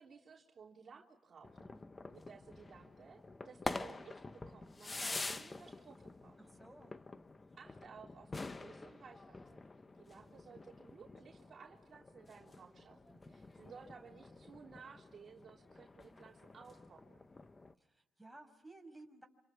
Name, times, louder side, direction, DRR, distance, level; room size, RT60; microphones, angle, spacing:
voice 1, 0.0-1.5 2.1-6.4 7.6-9.6 9.9-17.2, right 6 dB, 50° right, -1 dB, 3.5 m, -57 dB
sound 1, 1.4-17.7, left 3 dB, 25° left, 1.2 m, -48 dB
voice 2, 6.4-7.0 17.8-19.3, right 2 dB, 5° right, 3 dB, 5.9 m, -57 dB
27.0 x 27.0 x 7.4 m, 0.88 s
supercardioid pair, 65°, 0 cm